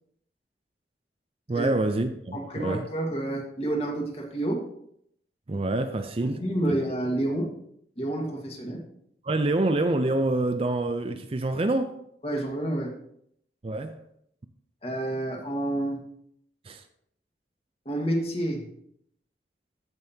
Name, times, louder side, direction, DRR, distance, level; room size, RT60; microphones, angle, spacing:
voice 1, 1.5-2.9 5.5-6.8 9.2-12.0 13.6-14.0 16.7-16.8, right 2 dB, 35° right, 0.5 m, -27 dB
voice 2, 2.3-4.6 6.2-7.5 8.0-8.8 12.2-12.9 14.8-16.0 17.8-18.6, right 1 dB, 35° left, 1.7 m, -29 dB
14.0 x 5.3 x 2.8 m
head